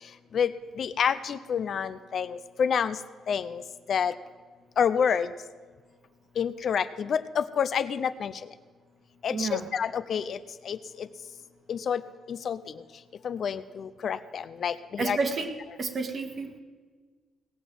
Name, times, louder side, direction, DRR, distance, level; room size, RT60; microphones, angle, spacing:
voice 1, 0.3-3.0 3.3-3.6 3.9-4.1 4.8-5.3 6.4-8.3 9.2-11.1 11.7-12.0 12.3-12.8 13.2-15.2, left 7 dB, 55° left, 13 dB, 0.5 m, -28 dB
voice 2, 9.3-9.7 15.0-15.5 15.8-16.6, right 4 dB, 45° right, 6 dB, 1.6 m, -30 dB
18.0 x 6.2 x 7.7 m, 1.5 s
cardioid pair, 90°, 0 cm